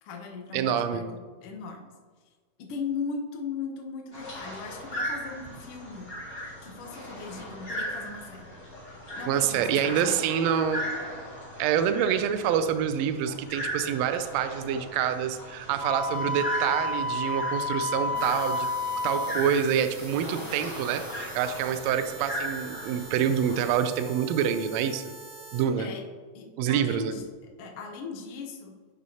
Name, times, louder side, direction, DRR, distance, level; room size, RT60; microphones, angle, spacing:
voice 1, 0.0-1.9 2.6-6.1 6.6-8.5 9.2-10.1 25.8-26.0 26.3-27.2 27.6-28.7, left 5 dB, 70° left, 1 dB, 1.5 m, -38 dB
voice 2, 0.5-1.0 9.3-10.8 11.6-18.7 19.0-25.0 25.5-25.9 26.6-27.1, right 8 dB, 80° right, 9 dB, 1.6 m, -26 dB
sound 1, 4.1-23.7, equal, 20° left, 2.1 m, -38 dB
Wind instrument woodwind instrument, 15.8-19.3, left 2 dB, 55° right, 1.4 m, -30 dB
sound 2, 18.1-25.6, right 2 dB, 40° right, 1.9 m, -45 dB
10.5 x 6.2 x 2.8 m, 1.5 s
omnidirectional pair, 3.4 m